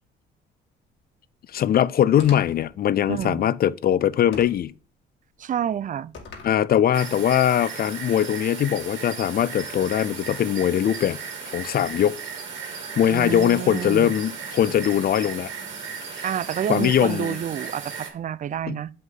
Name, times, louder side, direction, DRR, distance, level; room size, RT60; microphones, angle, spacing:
voice 1, 1.5-4.7 6.4-11.2 11.5-12.2 12.7-15.5 16.1-16.2 16.7-17.4 18.7-18.8, left 10 dB, 50° left, 0.4 m, -21 dB
sound 1, 2.2-2.7 4.3-4.7 6.1-6.6, left 4 dB, 70° left, 2.4 m, -41 dB
voice 2, 3.1-3.5 5.4-6.1 13.1-14.1 16.2-18.9, right 9 dB, 40° right, 0.4 m, -29 dB
sound 2, 6.9-18.1, right 6 dB, 75° right, 2.4 m, -36 dB
7.5 x 5.4 x 3.9 m
cardioid pair, 90°, 20 cm